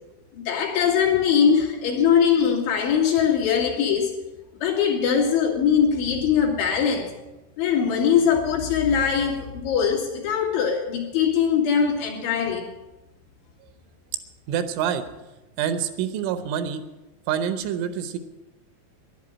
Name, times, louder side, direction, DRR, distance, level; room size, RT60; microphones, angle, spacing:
voice 1, 0.3-4.2 4.6-7.1 7.6-12.7, left 7 dB, 70° left, 4.4 m, -21 dB
voice 2, 14.5-15.0 15.6-16.8 17.3-18.2, right 8 dB, 80° right, 3.3 m, -26 dB
12.0 x 11.0 x 8.7 m
omnidirectional pair, 5.6 m